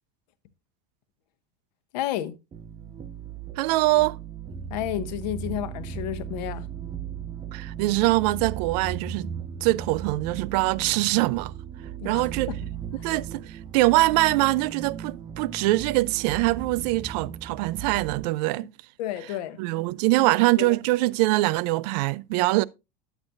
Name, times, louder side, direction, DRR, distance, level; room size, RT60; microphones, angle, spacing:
voice 1, 1.9-2.3 4.7-6.7 12.0-12.6 12.9-13.1 19.0-19.6 20.2-20.3 20.6-20.8, left 12 dB, 80° left, 1.0 m, -31 dB
sound 1, 2.5-18.3, right 8 dB, 20° right, 0.7 m, -37 dB
voice 2, 3.6-4.2 7.5-9.3 9.6-11.5 12.0-12.5 13.0-18.7 19.6-22.6, right 20 dB, 70° right, 0.5 m, -23 dB
10.5 x 8.2 x 2.5 m
supercardioid pair, 140°, 21 cm